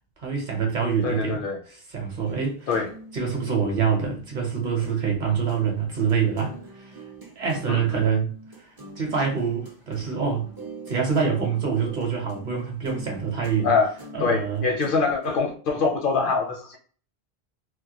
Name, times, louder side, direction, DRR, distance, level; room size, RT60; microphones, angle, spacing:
voice 1, 0.2-2.8 3.1-7.0 7.4-8.3 9.0-10.5 10.9-13.7 14.1-14.7, right 6 dB, 55° right, 0.8 m, -26 dB
voice 2, 1.0-1.6 2.7-2.9 7.7-8.0 13.6-13.9 14.2-16.8, left 4 dB, 65° left, 0.7 m, -24 dB
sound 1, 2.2-4.9 5.3-15.4, right 1 dB, 35° right, 0.4 m, -44 dB
2.2 x 2.1 x 2.8 m
omnidirectional pair, 1.0 m